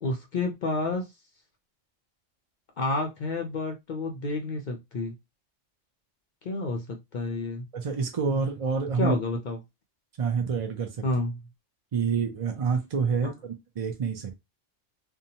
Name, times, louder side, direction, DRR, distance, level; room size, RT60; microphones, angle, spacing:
voice 1, 0.0-1.1 2.8-5.1 6.4-7.7 9.0-9.6 11.0-11.4 13.2-13.3, left 2 dB, 60° left, 0.5 m, -30 dB
voice 2, 7.7-9.2 10.2-11.0 11.9-14.3, right 5 dB, 55° right, 0.4 m, -27 dB
2.7 x 2.2 x 2.7 m
omnidirectional pair, 1.3 m